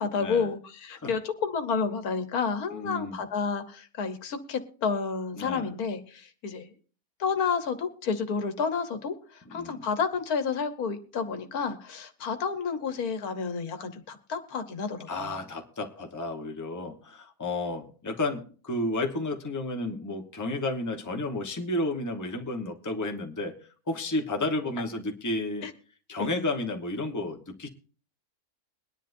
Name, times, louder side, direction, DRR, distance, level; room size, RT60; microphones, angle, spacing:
voice 1, 0.0-6.7 7.2-15.4 25.6-25.7 26.2-26.3, left 5 dB, 80° left, 9 dB, 1.6 m, -30 dB
voice 2, 2.7-3.2 5.4-5.7 9.5-9.9 15.1-23.5 23.9-25.7 26.1-27.7, left 2 dB, 15° left, 4 dB, 1.0 m, -32 dB
21.5 x 10.0 x 2.6 m, 0.40 s
omnidirectional pair, 1.5 m